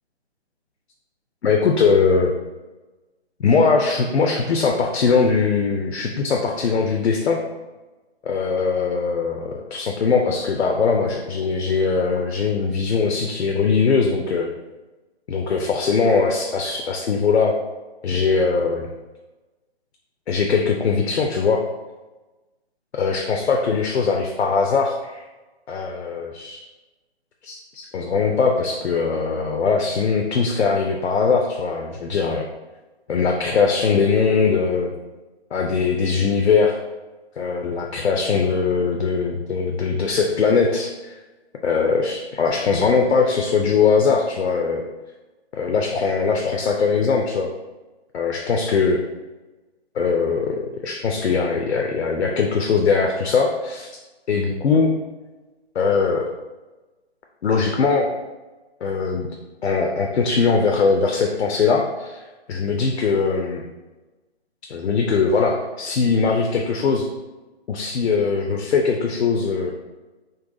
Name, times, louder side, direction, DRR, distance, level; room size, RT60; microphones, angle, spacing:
voice 1, 1.4-2.3 3.4-7.4 8.2-14.5 15.3-17.5 18.0-18.9 20.3-21.6 22.9-25.3 25.7-26.6 27.4-32.5 33.1-34.9 35.5-36.8 37.4-41.2 41.6-44.8 45.5-47.5 48.1-49.0 49.9-53.9 54.3-54.9 55.7-56.3 57.4-58.1 58.8-59.3 59.6-63.6 64.7-67.1 67.7-69.7, left 5 dB, 75° left, 2 dB, 0.5 m, -21 dB
3.8 x 2.1 x 2.5 m, 1.2 s
figure-of-eight pair, 145°, 33 cm